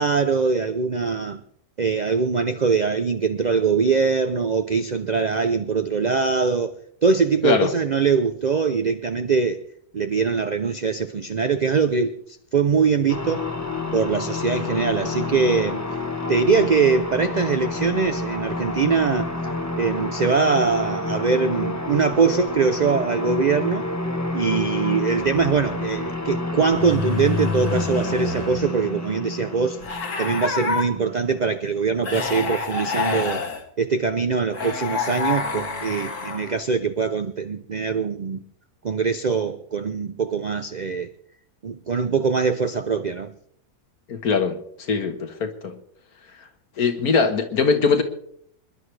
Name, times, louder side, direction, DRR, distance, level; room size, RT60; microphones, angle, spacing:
voice 1, 0.0-1.4 1.8-9.6 9.9-12.2 12.5-13.5 13.9-15.8 16.3-19.3 19.8-23.9 24.3-29.8 30.2-33.5 33.8-38.4 38.8-41.1 41.6-43.3, right 5 dB, 75° right, 0.4 m, -22 dB
sound 1, 13.1-31.4, left 2 dB, 10° left, 1.0 m, -29 dB
sound 2, 25.2-25.7 26.7-28.7 29.8-30.8 32.0-33.6 34.5-36.6, left 4 dB, 55° left, 1.8 m, -28 dB
voice 2, 44.1-44.6 44.9-45.7 46.8-48.0, left 5 dB, 70° left, 1.9 m, -21 dB
26.5 x 11.0 x 3.3 m
omnidirectional pair, 1.6 m